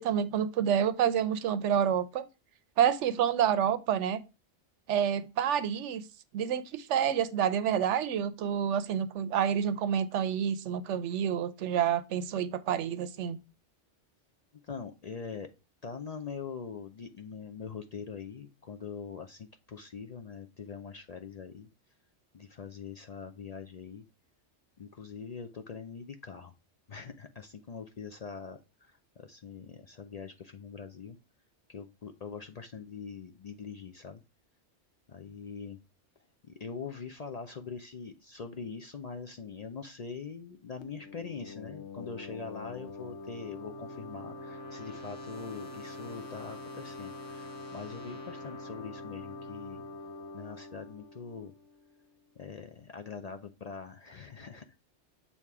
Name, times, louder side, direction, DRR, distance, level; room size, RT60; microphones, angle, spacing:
voice 1, 0.0-2.2 2.8-4.2 4.9-6.1 6.3-13.4, right 9 dB, 90° right, 0.9 m, -28 dB
voice 2, 14.6-15.5 15.8-21.7 22.3-24.0 24.8-26.5 26.9-31.2 31.7-34.2 35.1-35.8 36.4-49.8 50.3-51.5 52.4-54.8, left 5 dB, 55° left, 0.4 m, -43 dB
sound 1, 40.8-52.2, left 3 dB, 75° left, 1.0 m, -45 dB
sound 2, 42.9-50.0, right 4 dB, 10° left, 1.7 m, -52 dB
7.1 x 2.9 x 4.6 m
omnidirectional pair, 1.2 m